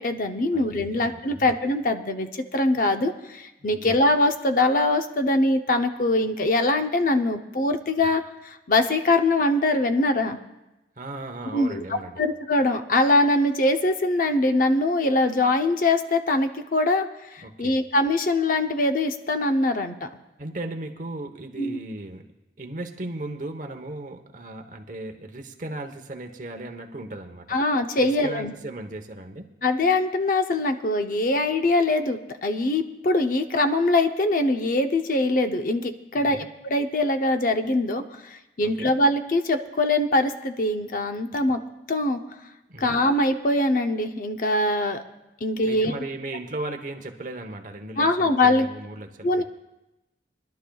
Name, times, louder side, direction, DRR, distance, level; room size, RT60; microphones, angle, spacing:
voice 1, 0.0-10.4 11.5-11.8 12.2-20.1 21.6-21.8 27.5-28.5 29.6-41.6 41.9-42.2 42.8-45.0 45.4-46.0 48.0-48.7 49.2-49.4, left 2 dB, 45° left, 6 dB, 0.7 m, -23 dB
voice 2, 0.5-1.5 3.6-4.0 11.0-12.2 17.4-17.8 20.4-22.3 22.6-27.6 28.0-29.5 36.2-36.5 38.6-38.9 42.7-43.0 45.6-49.4, right 2 dB, 45° right, 5 dB, 1.0 m, -36 dB
24.0 x 11.5 x 2.3 m, 0.96 s
head